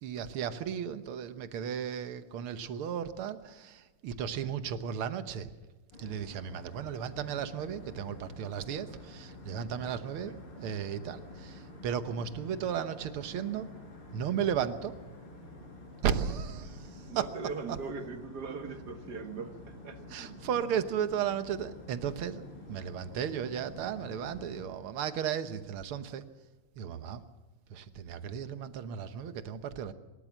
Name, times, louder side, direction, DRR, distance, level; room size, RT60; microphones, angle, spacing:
voice 1, 0.0-5.5 6.0-13.7 14.1-15.0 16.0-17.3 17.7-17.8 20.1-22.4 22.7-26.2 26.8-27.2 27.7-29.9, right 8 dB, 75° right, 11 dB, 1.9 m, -35 dB
sound 1, 5.9-24.7, left 2 dB, 90° left, 5.4 m, -49 dB
voice 2, 9.8-10.1 17.1-20.4, right 4 dB, 50° right, 7 dB, 2.0 m, -41 dB
26.5 x 13.5 x 7.4 m, 1.2 s
omnidirectional pair, 2.4 m